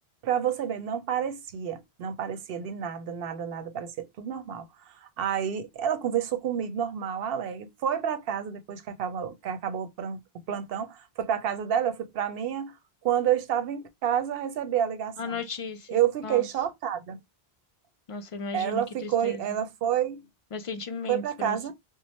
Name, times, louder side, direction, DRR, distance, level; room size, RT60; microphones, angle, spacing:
voice 1, 0.2-10.2 10.5-12.8 13.0-15.4 15.9-17.2 18.5-20.2 21.1-21.7, right 9 dB, 70° right, 0.8 m, -29 dB
voice 2, 15.2-16.5 18.1-19.6 20.5-21.7, left 4 dB, 60° left, 0.3 m, -36 dB
3.1 x 2.0 x 4.1 m
omnidirectional pair, 1.1 m